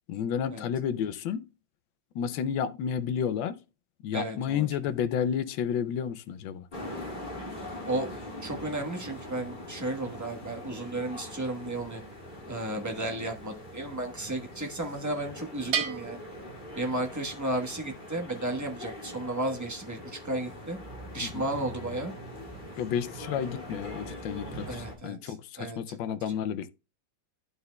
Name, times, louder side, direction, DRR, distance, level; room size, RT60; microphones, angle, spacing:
voice 1, 0.1-1.5 2.1-3.6 4.0-6.7 21.2-21.5 22.8-26.7, left 8 dB, 85° left, 1.4 m, -31 dB
voice 2, 4.1-4.7 7.8-8.1 8.4-12.0 12.5-16.2 16.7-20.8 21.1-22.1 24.6-26.0, right 1 dB, 10° right, 0.9 m, -33 dB
sound 1, 6.7-24.9, left 1 dB, 25° left, 2.0 m, -42 dB
Bell, 15.7-17.4, right 8 dB, 80° right, 1.7 m, -34 dB
11.5 x 5.4 x 2.2 m
omnidirectional pair, 2.0 m